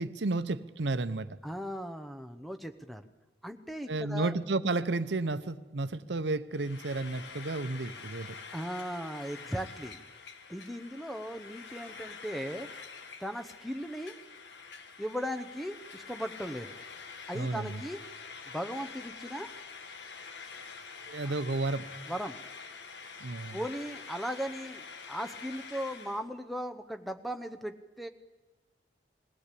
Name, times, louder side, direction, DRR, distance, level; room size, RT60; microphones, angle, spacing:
voice 1, 0.0-1.4 3.9-8.3 17.3-17.8 21.1-21.9 23.2-23.6, right 2 dB, 80° right, 13 dB, 0.7 m, -32 dB
voice 2, 1.4-3.0 3.4-4.3 8.5-10.0 10.5-12.7 13.2-14.2 15.0-16.7 17.3-18.0 18.5-19.5 21.2-21.3 22.1-22.4 23.5-28.1, equal, ahead, 8 dB, 0.8 m, -37 dB
Frying (food), 6.5-26.2, left 5 dB, 80° left, 1.4 m, -46 dB
20.5 x 16.5 x 8.4 m, 1.2 s
head